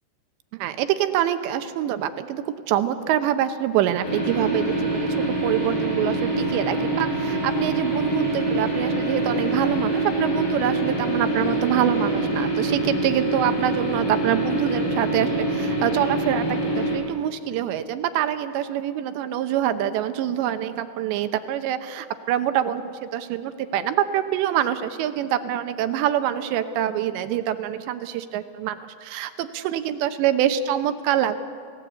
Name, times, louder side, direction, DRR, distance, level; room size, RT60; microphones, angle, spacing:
voice 1, 0.6-31.4, right 11 dB, 80° right, 9 dB, 3.1 m, -25 dB
sound 1, 4.0-17.0, right 2 dB, 70° left, 9.2 m, -25 dB
29.0 x 17.0 x 8.2 m, 2.2 s
omnidirectional pair, 5.1 m